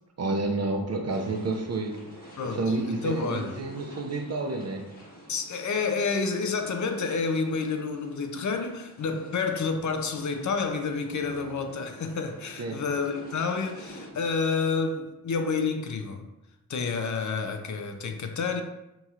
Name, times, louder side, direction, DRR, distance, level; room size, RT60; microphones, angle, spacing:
voice 1, 0.2-2.0 2.5-4.9 12.6-12.8, right 2 dB, 40° right, 0.6 m, -29 dB
sound 1, 1.1-14.1, equal, 25° left, 1.2 m, -48 dB
voice 2, 2.4-3.6 5.3-16.2 16.7-18.6, left 4 dB, 50° left, 0.5 m, -29 dB
4.0 x 3.0 x 2.4 m
supercardioid pair, 45°, 38 cm